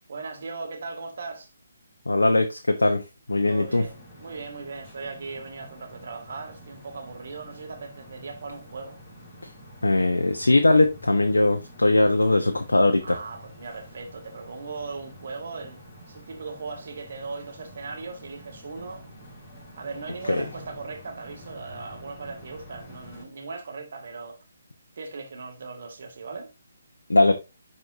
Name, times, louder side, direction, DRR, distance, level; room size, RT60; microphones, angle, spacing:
voice 1, 0.1-1.5 3.5-9.0 13.0-15.8 16.1-19.1 19.8-24.4 25.0-26.5, right 4 dB, 55° right, 2.0 m, -38 dB
voice 2, 2.1-3.8 9.8-13.0 20.3-20.4 27.1-27.3, left 2 dB, 80° left, 0.9 m, -20 dB
sound 1, 3.3-23.2, equal, 25° left, 3.9 m, -47 dB
10.5 x 4.3 x 2.6 m
figure-of-eight pair, 145°, 0 cm